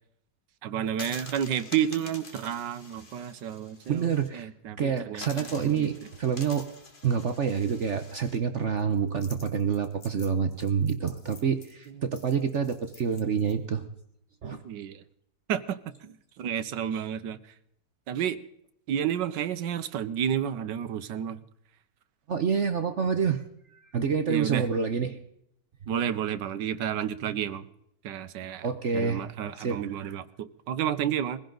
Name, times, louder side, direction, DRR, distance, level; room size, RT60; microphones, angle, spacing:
voice 1, 0.6-5.9 11.9-12.0 14.6-15.0 15.5-17.4 18.1-18.4 18.9-21.4 24.3-24.7 25.9-27.7 28.0-28.7 28.9-31.4, right 9 dB, 80° right, 1.5 m, -31 dB
sound 1, 0.9-4.3 4.6-4.7 5.2-13.5, left 3 dB, 30° left, 1.7 m, -47 dB
voice 2, 3.9-4.5 4.8-6.7 7.0-13.9 14.4-14.6 22.3-23.4 23.7-25.2 28.6-29.2 29.5-29.8, right 6 dB, 50° right, 1.0 m, -27 dB
21.0 x 16.0 x 3.9 m
omnidirectional pair, 1.9 m